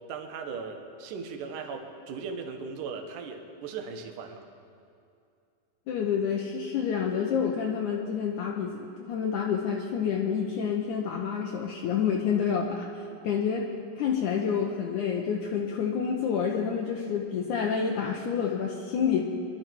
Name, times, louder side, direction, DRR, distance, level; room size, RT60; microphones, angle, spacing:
voice 1, 0.1-4.4, right 5 dB, 65° right, 5 dB, 2.4 m, -38 dB
voice 2, 5.9-19.3, left 7 dB, 80° left, -1 dB, 1.8 m, -28 dB
24.5 x 12.0 x 4.6 m, 2.5 s
omnidirectional pair, 4.7 m